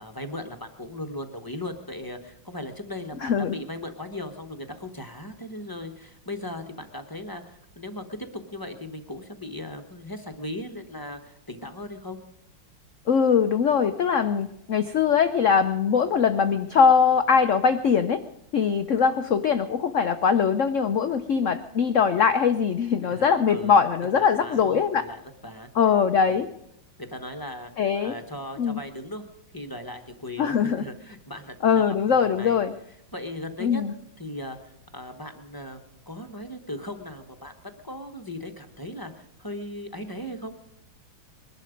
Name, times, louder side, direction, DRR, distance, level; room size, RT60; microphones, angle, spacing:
voice 1, 0.0-12.2 23.1-23.8 24.1-25.7 26.2-26.4 27.0-27.7 28.0-29.3 29.5-32.6 33.1-33.8 34.2-35.8 36.1-40.5, left 1 dB, 15° left, 6 dB, 0.7 m, -38 dB
voice 2, 3.2-3.5 13.1-18.2 18.5-25.0 25.8-26.5 27.8-28.1 28.6-28.8 30.4-30.8 31.6-32.7 33.6-33.9, left 6 dB, 90° left, 10 dB, 0.6 m, -21 dB
21.5 x 11.5 x 5.1 m, 0.80 s
omnidirectional pair, 2.2 m